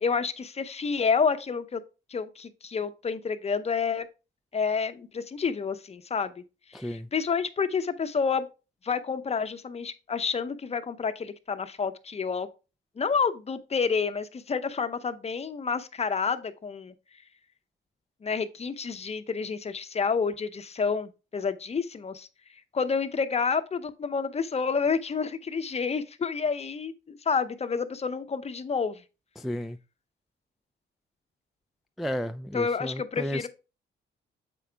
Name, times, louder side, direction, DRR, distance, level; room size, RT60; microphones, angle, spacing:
voice 1, 0.0-1.8 2.1-4.1 4.5-6.4 6.7-8.5 8.8-12.5 13.0-16.9 18.2-22.3 22.7-29.0 32.5-33.5, left 5 dB, 30° left, 0.8 m, -29 dB
voice 2, 6.7-7.1 29.4-29.8 32.0-33.5, equal, ahead, 0.3 m, -33 dB
7.6 x 4.9 x 3.4 m
cardioid pair, 90°, 20 cm